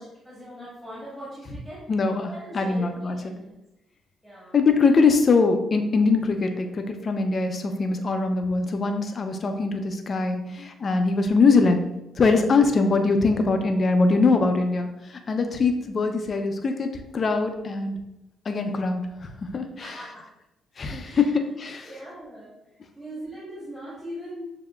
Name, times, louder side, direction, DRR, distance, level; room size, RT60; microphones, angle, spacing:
voice 1, 0.0-1.8 2.3-3.6 4.2-4.5 19.8-20.2 21.0-21.3 21.8-22.5 22.9-24.4, equal, ahead, -8 dB, 1.4 m, -40 dB
voice 2, 1.9-3.3 4.5-11.8 12.2-18.0 18.5-20.0 20.8-21.9, left 4 dB, 40° left, 6 dB, 0.6 m, -22 dB
7.1 x 2.8 x 2.3 m, 0.92 s
cardioid pair, 90°, 0 cm